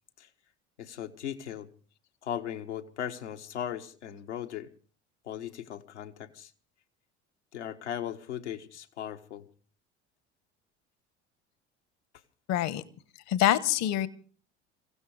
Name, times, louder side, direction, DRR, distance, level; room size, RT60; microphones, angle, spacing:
voice 1, 0.8-1.7 2.2-4.7 5.2-6.5 7.5-9.5, left 10 dB, 75° left, 5 dB, 1.4 m, -38 dB
voice 2, 12.5-12.8 13.3-14.1, left 12 dB, 50° left, 17 dB, 1.3 m, -25 dB
26.0 x 16.0 x 3.4 m, 0.42 s
figure-of-eight pair, 65°, 35 cm